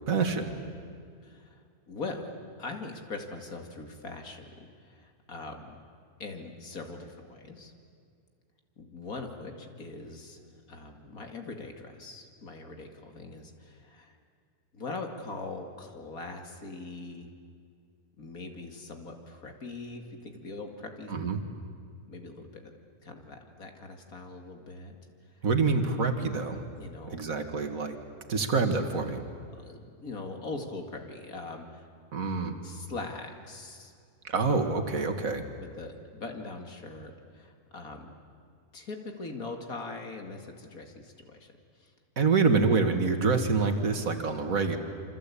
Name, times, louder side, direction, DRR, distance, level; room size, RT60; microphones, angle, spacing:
voice 1, 0.1-0.6 21.1-21.4 25.4-26.6 27.1-28.0 28.3-29.2 32.1-32.6 34.2-35.5 42.2-44.8, right 4 dB, 60° right, 6 dB, 2.2 m, -26 dB
voice 2, 1.2-5.8 6.2-7.7 8.8-10.4 10.7-14.2 14.7-17.3 18.2-21.1 22.1-22.7 23.0-25.0 25.4-25.5 26.8-27.2 29.5-31.9 32.6-33.9 35.6-38.1 38.7-41.9, left 3 dB, 65° left, 4 dB, 2.7 m, -41 dB
27.5 x 25.5 x 8.5 m, 2.2 s
omnidirectional pair, 1.6 m